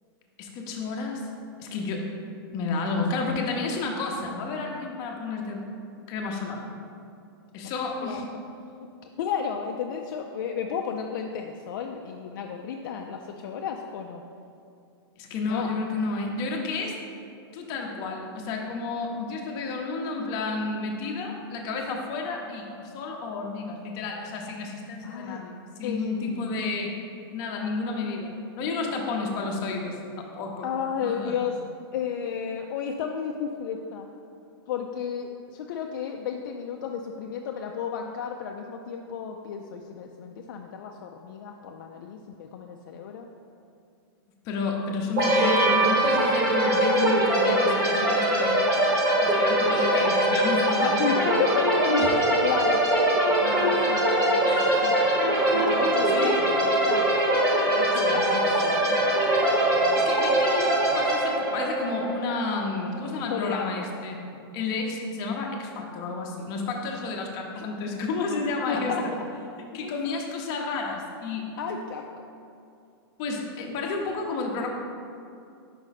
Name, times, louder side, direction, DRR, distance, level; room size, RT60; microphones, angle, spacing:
voice 1, 0.4-1.2 1.6-2.1 2.5-5.7 6.1-6.6 7.5-8.3 15.2-17.0 17.5-26.9 27.3-30.7 31.0-31.4 44.4-48.6 49.2-51.3 51.8-52.3 54.5-54.9 56.1-56.4 57.8-58.5 60.0-64.2 64.5-69.1 69.6-71.5 73.2-74.7, left 3 dB, 30° left, 0 dB, 0.7 m, -31 dB
voice 2, 9.2-14.2 15.4-15.7 25.0-25.4 25.8-26.7 30.6-31.6 31.9-34.1 34.7-43.3 49.8-49.9 50.8-51.7 52.4-52.8 53.4-55.0 55.5-57.1 57.7-59.2 59.7-60.1 63.3-63.8 68.7-69.0 69.8-69.9 71.6-72.0, left 7 dB, 50° left, 2 dB, 0.4 m, -32 dB
sound 1, 45.2-62.8, right 1 dB, 25° right, 1.0 m, -22 dB
5.1 x 4.9 x 4.1 m, 2.5 s
supercardioid pair, 165°, 13 cm